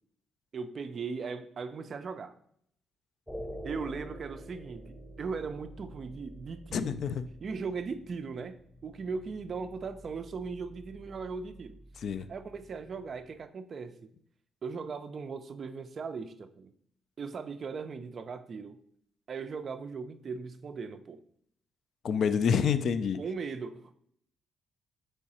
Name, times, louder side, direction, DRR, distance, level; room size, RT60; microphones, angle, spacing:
voice 1, 0.5-2.3 3.6-7.0 7.4-8.6 8.8-11.8 12.2-14.1 14.6-16.7 17.2-18.8 19.3-21.2 23.2-23.9, right 5 dB, 50° right, 10 dB, 0.3 m, -38 dB
sound 1, 3.3-13.5, equal, ahead, 0.7 m, -48 dB
voice 2, 6.7-7.2 12.0-12.3 22.0-23.2, left 7 dB, 60° left, 11 dB, 0.3 m, -27 dB
3.7 x 3.3 x 4.2 m, 0.66 s
cardioid pair, 90°, 0 cm